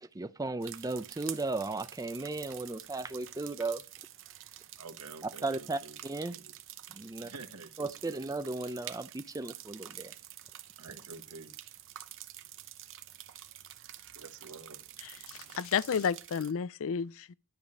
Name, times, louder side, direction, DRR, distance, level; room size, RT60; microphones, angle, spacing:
voice 1, 0.0-3.8 5.4-6.4 6.9-7.3 7.8-10.1, right 2 dB, 15° right, 0.5 m, -36 dB
sound 1, 0.6-16.5, right 12 dB, 60° right, 0.8 m, -48 dB
voice 2, 4.8-6.0 6.3-6.5 7.2-8.3 10.8-11.7 14.1-14.9 15.1-15.6, right 3 dB, 80° right, 1.4 m, -49 dB
voice 3, 15.0-17.3, left 7 dB, 65° left, 0.4 m, -32 dB
11.5 x 5.0 x 7.2 m
head